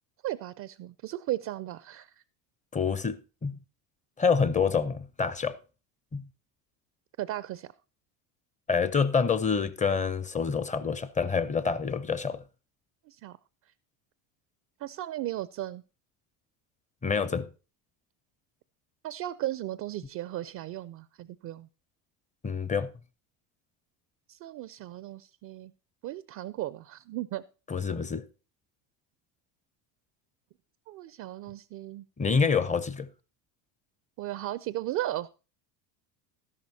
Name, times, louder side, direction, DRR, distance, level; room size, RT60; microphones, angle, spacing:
voice 1, 0.2-2.1 7.2-7.7 13.1-13.4 14.8-15.8 19.0-21.7 24.3-25.7 26.0-27.4 30.9-32.1 34.2-35.3, right 14 dB, 40° right, 0.4 m, -36 dB
voice 2, 2.7-3.6 4.2-5.6 6.1-6.3 8.7-12.4 17.0-17.5 22.4-22.9 27.7-28.2 32.2-33.1, left 5 dB, 15° left, 0.5 m, -27 dB
12.5 x 11.0 x 2.7 m
hypercardioid pair, 85°, 49 cm